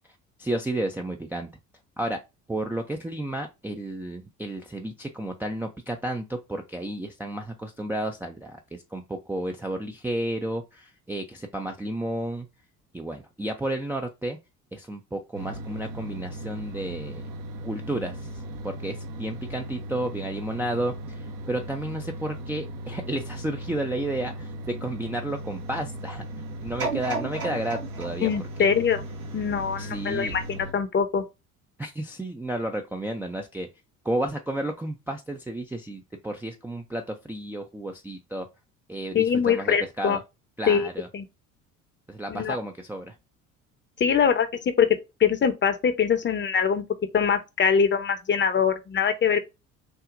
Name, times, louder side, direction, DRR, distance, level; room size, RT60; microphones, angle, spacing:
voice 1, 0.4-1.5 2.0-2.2 2.5-12.5 12.9-14.4 14.7-17.3 17.6-18.3 18.6-24.5 24.8-26.2 26.6-28.3 28.6-28.7 29.8-30.3 31.8-33.7 34.0-38.5 38.9-40.2 40.6-41.1 42.1-43.1, right 1 dB, 5° right, 0.5 m, -32 dB
sound 1, 15.3-30.7, right 1 dB, 55° right, 0.9 m, -37 dB
sound 2, 26.8-29.9 30.4-30.5, right 3 dB, 75° right, 2.3 m, -34 dB
voice 2, 28.2-29.0 29.3-31.2 39.1-40.2 40.7-40.9 41.1-41.2 42.3-42.6 44.0-44.5 44.8-44.9 45.2-46.8 47.1-49.4, left 7 dB, 25° left, 0.8 m, -23 dB
6.1 x 2.4 x 2.5 m
figure-of-eight pair, 60°, 44 cm